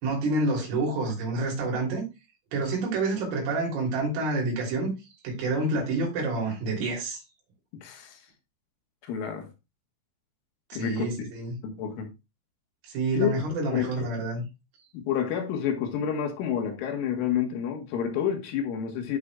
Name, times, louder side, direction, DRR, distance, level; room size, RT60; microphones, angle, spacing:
voice 1, 0.0-2.1 2.5-4.9 5.2-7.2 10.7-11.6 12.8-14.4, right 2 dB, 90° right, 5.9 m, -28 dB
voice 2, 7.8-8.2 9.0-9.5 10.7-11.2 11.6-12.1 13.2-13.4 13.7-13.9 14.9-19.2, left 8 dB, 80° left, 3.8 m, -29 dB
14.5 x 5.2 x 2.4 m
omnidirectional pair, 5.6 m